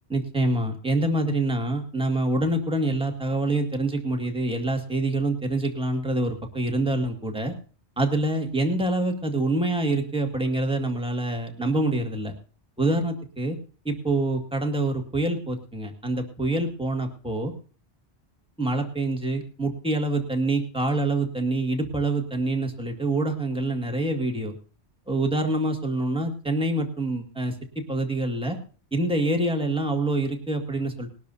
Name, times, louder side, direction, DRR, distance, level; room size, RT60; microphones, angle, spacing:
voice 1, 0.1-7.5 8.0-12.3 12.8-13.6 13.9-17.5 18.6-24.5 25.1-27.5 27.9-28.6 28.9-31.1, right 2 dB, 5° right, 4 dB, 2.0 m, -26 dB
20.5 x 12.0 x 2.7 m, 0.38 s
omnidirectional pair, 1.1 m